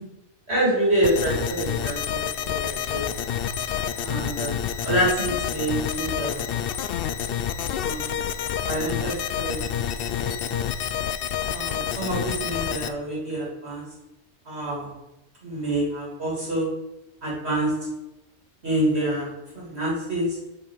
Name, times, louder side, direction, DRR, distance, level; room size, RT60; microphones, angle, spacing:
voice 1, 0.5-3.2 4.0-4.6 4.8-6.4 7.8-8.1 8.7-9.6 9.9-10.0 10.2-10.6 11.5-13.8 14.5-14.9 15.4-16.7 17.2-17.7 18.6-19.3 19.5-20.4, right 1 dB, 65° right, -5 dB, 3.2 m, -27 dB
sound 1, 1.0-12.9, left 9 dB, 60° left, 0.7 m, -28 dB
6.4 x 5.8 x 6.5 m, 0.94 s
omnidirectional pair, 1.2 m